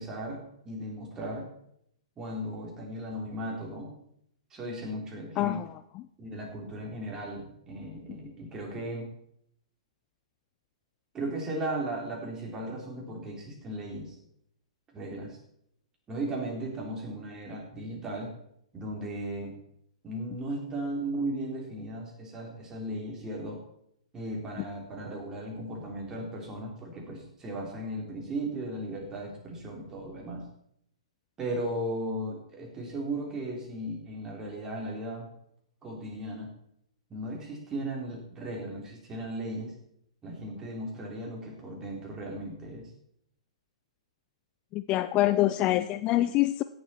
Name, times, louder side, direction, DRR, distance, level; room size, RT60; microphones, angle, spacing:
voice 1, 0.0-1.4 2.2-3.9 4.5-5.6 6.2-9.1 11.1-14.2 14.9-15.4 16.1-18.3 18.7-19.5 20.0-23.6 24.1-30.4 31.4-35.3 35.8-36.5 37.1-39.7 40.2-42.9, right 1 dB, 20° right, -1 dB, 3.5 m, -36 dB
voice 2, 5.4-5.7 44.7-46.6, left 15 dB, 30° left, 13 dB, 0.4 m, -25 dB
16.5 x 7.4 x 4.4 m, 0.74 s
figure-of-eight pair, 115°, 3 cm